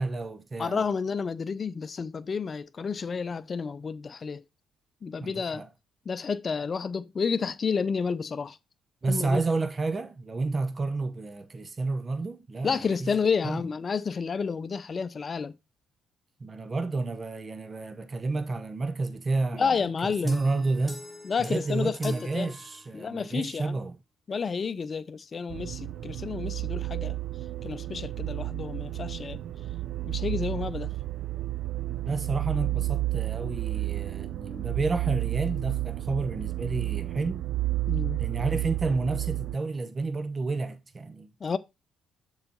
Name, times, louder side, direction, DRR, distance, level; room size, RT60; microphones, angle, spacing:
voice 1, 0.0-0.8 5.2-5.7 9.0-13.1 13.4-13.6 16.4-19.8 20.0-21.0 21.4-24.0 32.0-37.4 38.2-41.3, right 3 dB, 35° right, 0.9 m, -30 dB
voice 2, 0.6-4.4 5.0-5.6 6.1-8.6 9.0-9.4 12.6-15.6 19.5-20.4 21.2-22.5 22.9-23.8 24.3-27.2 27.6-29.4 30.0-31.0 37.9-38.2 41.4-41.6, left 5 dB, 45° left, 0.6 m, -30 dB
sound 1, 20.3-23.3, left 1 dB, 10° left, 2.8 m, -44 dB
sound 2, 25.5-39.6, right 16 dB, 65° right, 0.5 m, -31 dB
6.9 x 4.9 x 4.0 m
hypercardioid pair, 50°, 0 cm